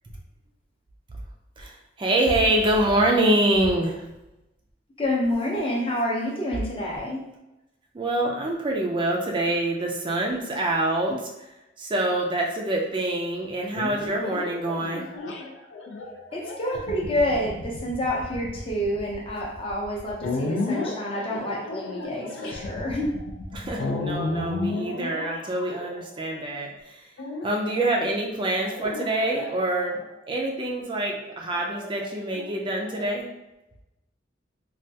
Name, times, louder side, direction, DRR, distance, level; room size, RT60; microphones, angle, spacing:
voice 1, 1.6-4.0 7.9-11.2 11.8-15.0 23.5-27.1 27.4-30.0 30.3-33.3, right 1 dB, 25° right, 0 dB, 0.3 m, -25 dB
voice 2, 5.0-7.2 16.3-23.2, left 1 dB, 30° left, -1 dB, 0.6 m, -28 dB
sound 1, 13.7-26.4 27.2-27.8 28.6-30.1 31.7-33.1, left 2 dB, 90° left, 0.5 m, -33 dB
3.2 x 2.3 x 2.7 m, 0.94 s
head